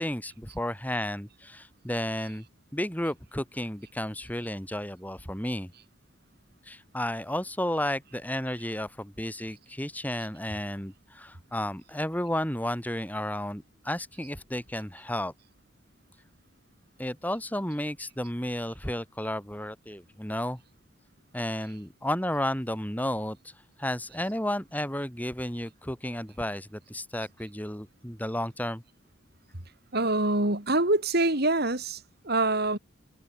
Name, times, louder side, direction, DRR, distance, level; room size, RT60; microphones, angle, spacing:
voice 1, 0.0-2.4 2.7-5.7 6.7-15.3 17.0-20.6 21.3-23.4 23.8-28.8, left 1 dB, 10° left, 4.7 m, -32 dB
voice 2, 29.9-32.8, right 2 dB, 50° right, 3.3 m, -25 dB
head